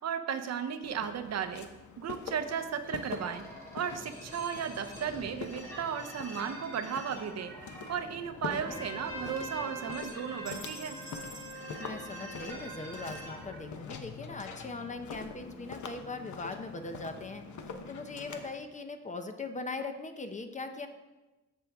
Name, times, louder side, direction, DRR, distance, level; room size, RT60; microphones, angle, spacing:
voice 1, 0.0-1.7 2.0-3.5 3.7-7.5 7.9-11.0, right 7 dB, 60° right, 9 dB, 0.7 m, -35 dB
Walk footsteps, 0.8-18.5, left 5 dB, 80° left, 1.0 m, -45 dB
sound 1, 2.8-13.6, equal, 10° left, 3.0 m, -47 dB
Trumpet, 8.4-13.5, right 1 dB, 20° right, 3.4 m, -44 dB
voice 2, 8.5-8.8 11.8-17.4 17.9-20.9, left 3 dB, 25° left, 7 dB, 0.6 m, -40 dB
15.0 x 6.2 x 3.5 m, 1.1 s
wide cardioid pair, 175°, 29 cm